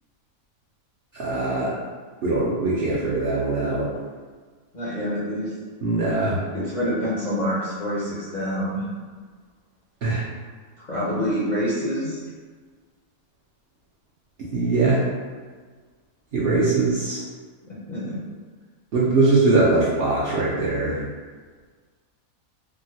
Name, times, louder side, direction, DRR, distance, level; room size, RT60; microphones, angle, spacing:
voice 1, 1.1-1.7 2.2-3.9 5.8-6.4 10.0-10.2 14.5-15.0 16.3-17.2 18.9-21.0, right 3 dB, 60° right, -8 dB, 0.7 m, -21 dB
voice 2, 4.7-5.5 6.5-8.8 10.8-12.2 17.6-18.2, equal, 45° left, -9 dB, 0.6 m, -27 dB
3.7 x 2.1 x 2.7 m, 1.5 s
omnidirectional pair, 1.5 m